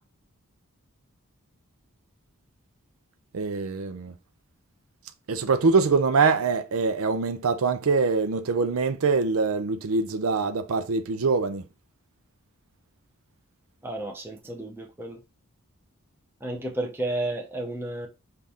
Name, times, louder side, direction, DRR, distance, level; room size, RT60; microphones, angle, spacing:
voice 1, 3.3-4.1 5.3-11.6, right 4 dB, 75° right, 0.5 m, -24 dB
voice 2, 13.8-15.2 16.4-18.1, right 1 dB, 10° right, 0.7 m, -32 dB
5.7 x 2.5 x 3.5 m
head